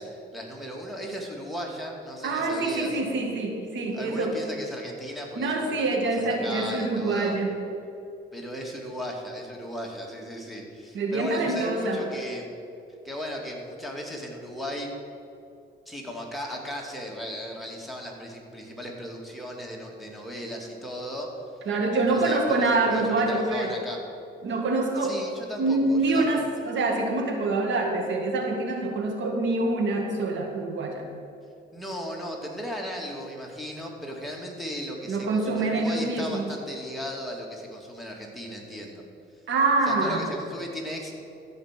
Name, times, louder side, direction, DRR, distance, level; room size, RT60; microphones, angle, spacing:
voice 1, 0.0-3.0 3.9-7.4 8.3-12.5 13.0-14.9 15.9-21.3 21.9-24.0 25.0-26.4 31.7-39.0 39.9-41.1, equal, ahead, -1 dB, 2.4 m, -36 dB
voice 2, 2.2-4.4 5.4-7.6 10.9-12.0 21.7-23.7 24.4-25.2 25.6-31.1 35.1-36.5 39.5-40.3, right 2 dB, 70° right, 2 dB, 1.9 m, -25 dB
14.5 x 5.3 x 7.5 m, 2.6 s
cardioid pair, 90°, 20 cm